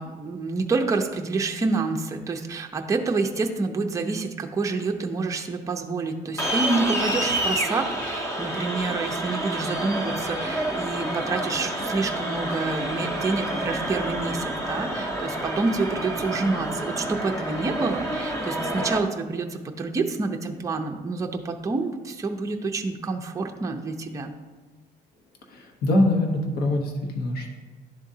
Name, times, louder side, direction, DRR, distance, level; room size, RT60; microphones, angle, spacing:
voice 1, 0.0-24.3, right 3 dB, 20° right, 3 dB, 0.5 m, -28 dB
sound 1, 6.4-19.0, right 1 dB, 15° left, 0.9 m, -29 dB
voice 2, 25.5-27.5, left 1 dB, 65° left, 2 dB, 1.1 m, -23 dB
11.0 x 3.7 x 2.7 m, 1.3 s
cardioid pair, 110°, 17 cm